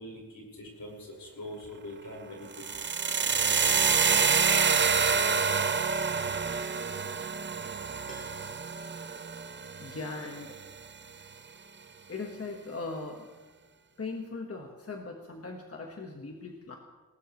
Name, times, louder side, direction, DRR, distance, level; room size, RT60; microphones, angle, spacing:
voice 1, 0.0-2.6 9.0-9.2, left 1 dB, 75° left, -2 dB, 5.3 m, -43 dB
sound 1, 2.5-10.6, right 5 dB, 30° right, 0.6 m, -27 dB
Piano, 8.1-10.2 10.4-10.5, left 1 dB, 20° left, 5.3 m, -54 dB
voice 2, 9.8-10.6 12.1-13.3 14.0-16.8, left 3 dB, 40° left, 1 dB, 1.5 m, -39 dB
19.5 x 19.0 x 3.2 m, 1.2 s
wide cardioid pair, 105°, 35 cm